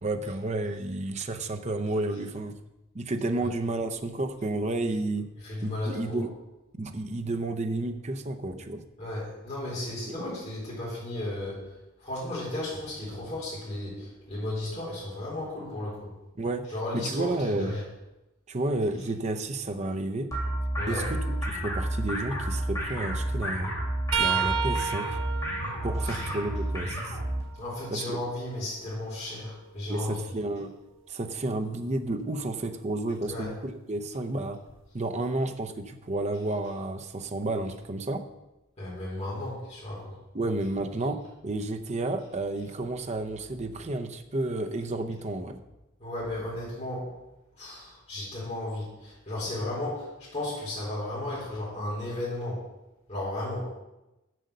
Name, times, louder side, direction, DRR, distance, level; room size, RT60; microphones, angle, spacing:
voice 1, 0.0-2.5 2.9-5.3 5.6-6.3 6.8-8.8 10.1-10.2 16.4-16.6 16.9-17.7 18.5-20.3 20.9-23.7 24.2-25.1 25.8-27.0 27.9-28.2 29.9-30.7 31.1-34.6 34.9-38.2 40.3-45.6, right 2 dB, 35° right, 6 dB, 0.6 m, -31 dB
voice 2, 5.4-6.2 9.0-11.7 12.0-16.1 16.7-17.8 20.8-21.0 26.0-26.3 27.6-30.2 33.3-33.5 38.8-40.1 46.0-47.1 47.6-52.6 53.1-53.6, left 1 dB, 30° left, -8 dB, 4.1 m, -34 dB
sound 1, 20.3-27.4, right 1 dB, 15° left, 3.3 m, -31 dB
sound 2, 24.1-27.9 28.4-30.4 33.3-33.5 34.7-34.9 36.2-36.3, right 6 dB, 70° right, 1.0 m, -33 dB
7.8 x 7.6 x 6.6 m, 0.99 s
head